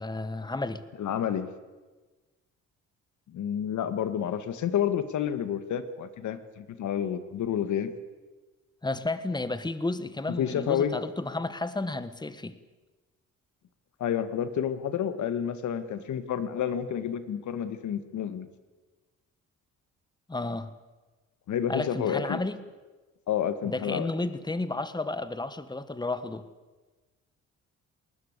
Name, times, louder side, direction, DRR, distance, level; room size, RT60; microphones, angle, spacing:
voice 1, 0.0-0.8 8.8-12.6 20.3-20.7 21.7-22.6 23.6-26.5, left 2 dB, 15° left, 13 dB, 1.5 m, -32 dB
voice 2, 1.0-1.5 3.3-7.9 10.3-10.9 14.0-18.5 21.5-22.4 23.3-24.1, left 9 dB, 70° left, 11 dB, 1.9 m, -29 dB
20.5 x 19.5 x 8.3 m, 1.3 s
cardioid pair, 90°, 30 cm